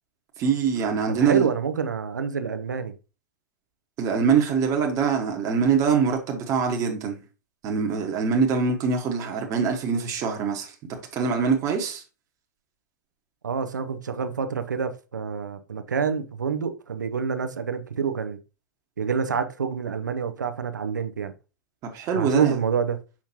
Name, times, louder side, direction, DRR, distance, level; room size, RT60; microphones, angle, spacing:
voice 1, 0.4-1.5 4.0-7.2 7.6-10.7 11.1-12.0 21.9-22.6, right 6 dB, 30° right, 1.2 m, -23 dB
voice 2, 1.2-2.9 13.4-18.4 19.0-21.3 22.1-23.0, right 6 dB, 75° right, 0.7 m, -27 dB
6.0 x 5.7 x 2.8 m
figure-of-eight pair, 95°, 10 cm